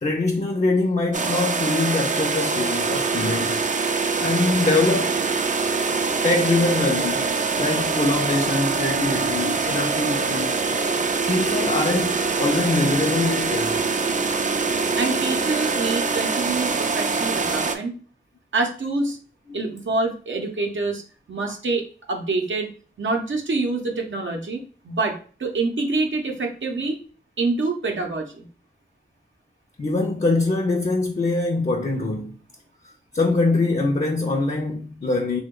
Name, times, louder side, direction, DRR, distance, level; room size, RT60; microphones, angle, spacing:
voice 1, 0.0-3.6 4.2-5.2 6.2-7.3 7.6-10.6 11.3-13.9 19.5-19.7 29.8-32.4 32.8-35.4, left 3 dB, 40° left, 0.5 m, -23 dB
sound 1, 1.1-17.8, right 4 dB, 40° right, 0.4 m, -24 dB
voice 2, 14.9-17.9 18.5-19.2 19.5-21.0 21.3-22.7 23.0-27.0 27.4-28.5, right 3 dB, 75° right, 0.6 m, -26 dB
2.8 x 2.2 x 3.6 m
wide cardioid pair, 45°, 20 cm